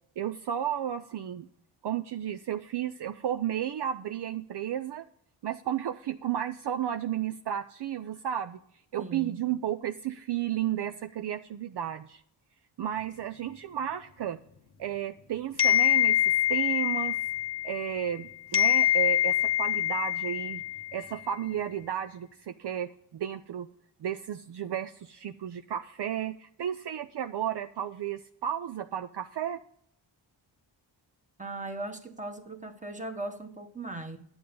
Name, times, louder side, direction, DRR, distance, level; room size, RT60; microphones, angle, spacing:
voice 1, 0.2-1.5 1.8-5.0 5.4-8.6 8.9-12.2 12.8-14.4 14.8-16.2 16.5-17.2 17.6-20.6 20.9-23.7 24.0-29.6, right 10 dB, 60° right, 0.6 m, -33 dB
voice 2, 9.0-9.4 31.4-34.2, right 2 dB, 15° right, 1.4 m, -38 dB
sound 1, 15.6-18.2 18.5-21.1, left 12 dB, 55° left, 1.0 m, -25 dB
9.9 x 7.9 x 5.2 m
cardioid pair, 75°, 47 cm